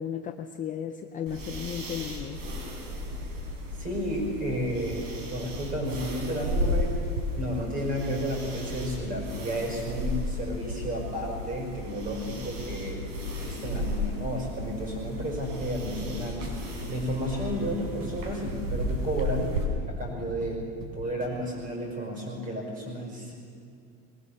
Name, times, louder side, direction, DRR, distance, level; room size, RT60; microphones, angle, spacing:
voice 1, 0.0-2.4, left 9 dB, 20° left, 6 dB, 0.5 m, -34 dB
sound 1, 1.3-19.6, left 1 dB, 85° right, 4.7 m, -34 dB
voice 2, 3.8-6.9 7.3-16.5 16.9-19.6 19.9-20.6 20.9-23.3, equal, 25° right, 0 dB, 5.5 m, -32 dB
sound 2, 15.6-21.7, right 1 dB, 40° right, 3.0 m, -43 dB
21.5 x 19.0 x 6.7 m, 2.4 s
cardioid pair, 165°, 36 cm